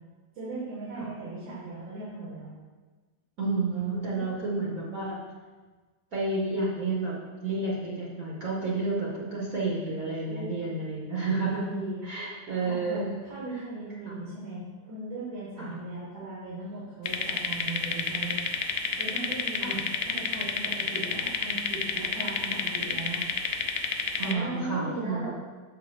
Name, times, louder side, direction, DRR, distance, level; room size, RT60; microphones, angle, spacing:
voice 1, 0.3-2.5 4.1-4.2 10.3-11.0 11.4-12.2 12.6-13.0 13.3-18.5 19.0-19.9 20.1-23.2 24.2-25.3, right 2 dB, 85° right, -9 dB, 2.3 m, -38 dB
voice 2, 3.4-5.2 6.1-7.1 7.4-11.6 12.0-13.1 14.1-14.2 15.6-15.7 19.6-19.8 24.2-25.3, right 3 dB, 50° right, -5 dB, 1.5 m, -30 dB
sound 1, 17.1-24.3, left 6 dB, 90° left, 0.7 m, -30 dB
6.5 x 6.4 x 3.3 m, 1.3 s
omnidirectional pair, 2.0 m